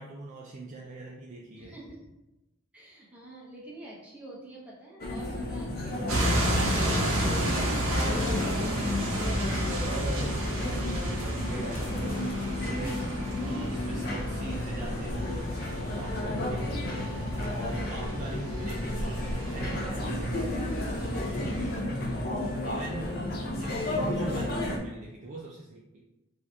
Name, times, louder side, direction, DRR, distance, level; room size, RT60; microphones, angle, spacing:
voice 1, 0.0-1.8 7.8-8.2 9.6-13.0 13.4-17.1 17.4-20.5 22.6-26.0, right 2 dB, 35° right, -3 dB, 0.3 m, -42 dB
voice 2, 1.6-2.0 2.7-6.7 7.1-7.9 8.3-9.4 20.9-21.4 21.9-22.8, right 1 dB, 5° right, -6 dB, 0.7 m, -45 dB
sound 1, 5.0-24.8, left 1 dB, 45° left, 0.4 m, -32 dB
sound 2, 6.1-21.8, equal, 65° right, 0.8 m, -32 dB
2.7 x 2.4 x 3.2 m, 0.97 s
head